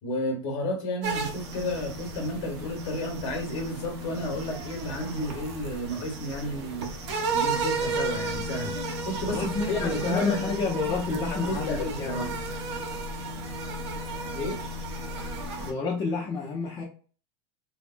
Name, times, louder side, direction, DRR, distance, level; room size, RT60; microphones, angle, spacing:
voice 1, 0.0-6.9 7.3-8.7 9.0-9.4 9.7-10.5 11.1-12.2 14.3-14.6, left 1 dB, 45° left, 1.2 m, -32 dB
sound 1, 1.0-15.7, right 2 dB, 80° right, 0.7 m, -33 dB
voice 2, 9.3-12.3 15.6-16.8, left 4 dB, 25° left, 0.6 m, -30 dB
3.2 x 2.1 x 2.5 m
supercardioid pair, 155°, 14 cm